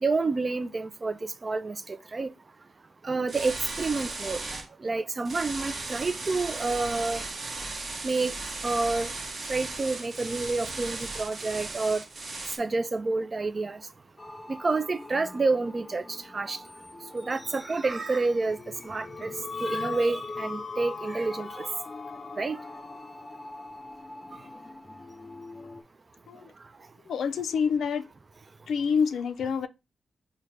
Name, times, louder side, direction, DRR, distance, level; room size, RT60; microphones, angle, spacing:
voice 1, 0.0-2.3 3.0-4.4 4.8-7.2 8.0-8.3 8.6-9.1 9.5-12.0 12.6-13.8 14.5-16.6 17.1-18.6 18.8-19.3 19.6-21.7 22.4-22.6, right 3 dB, 35° right, 0.3 m, -29 dB
sound 1, 3.3-4.6 5.2-12.6, right 3 dB, 55° right, 0.9 m, -36 dB
sound 2, 14.2-25.8, left 3 dB, 30° left, 0.5 m, -41 dB
voice 2, 27.1-28.1 28.7-29.7, left 6 dB, 85° left, 0.3 m, -27 dB
4.8 x 2.2 x 3.2 m
cardioid pair, 80°, 0 cm